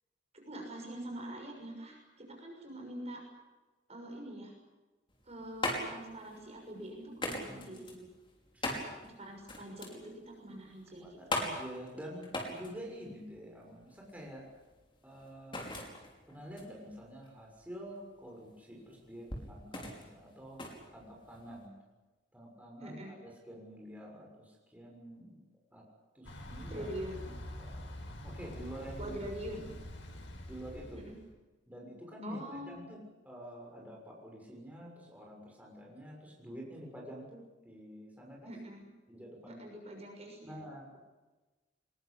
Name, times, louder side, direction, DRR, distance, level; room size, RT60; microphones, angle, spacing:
voice 1, 0.3-3.2 3.9-4.5 5.2-8.0 9.0-11.2 22.8-23.2 26.7-27.3 29.0-29.7 31.0-31.1 32.2-32.8 38.4-38.9 39.5-40.6, right 1 dB, 35° right, 2 dB, 6.4 m, -44 dB
sound 1, 5.1-21.7, left 1 dB, 25° left, 5.2 m, -41 dB
voice 2, 7.4-7.9 8.5-8.9 11.0-14.5 15.0-15.7 16.3-20.6 20.9-21.7 22.3-25.3 25.7-25.8 26.1-26.8 27.6-27.8 28.2-29.2 30.4-31.0 31.7-33.0 33.2-38.5 39.1-39.6 40.4-41.0, equal, 10° right, -2 dB, 6.7 m, -48 dB
Thunder / Bicycle, 26.2-31.3, left 1 dB, 85° left, 5.1 m, -45 dB
23.0 x 21.5 x 8.5 m, 1.2 s
head